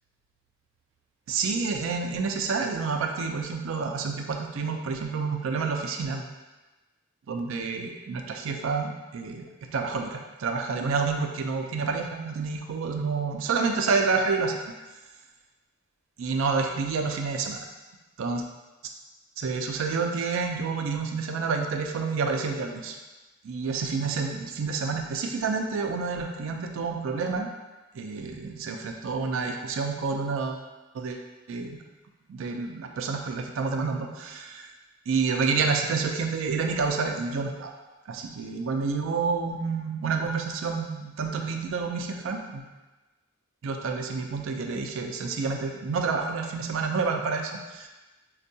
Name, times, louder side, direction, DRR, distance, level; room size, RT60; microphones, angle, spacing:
voice 1, 1.3-6.2 7.3-9.5 9.7-14.6 16.2-17.6 18.2-18.4 19.4-23.0 23.4-27.5 27.9-30.6 30.9-31.2 31.5-31.8 32.3-34.7 35.1-37.7 38.1-42.7 43.6-47.9, right 4 dB, 70° right, 3 dB, 0.4 m, -29 dB
4.3 x 2.2 x 2.7 m, 1.1 s
head